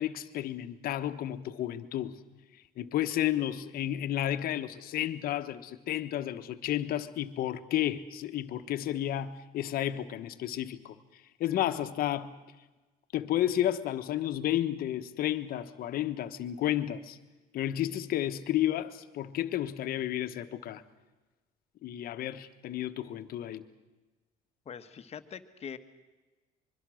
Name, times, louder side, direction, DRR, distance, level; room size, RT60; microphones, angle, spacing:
voice 1, 0.0-2.1 2.8-11.0 11.4-12.3 13.1-17.2 17.5-20.8 21.8-23.7, left 12 dB, 60° left, 1.3 m, -32 dB
voice 2, 24.6-25.8, left 7 dB, 40° left, 1.4 m, -43 dB
24.5 x 23.0 x 6.4 m
cardioid pair, 125°, 17 cm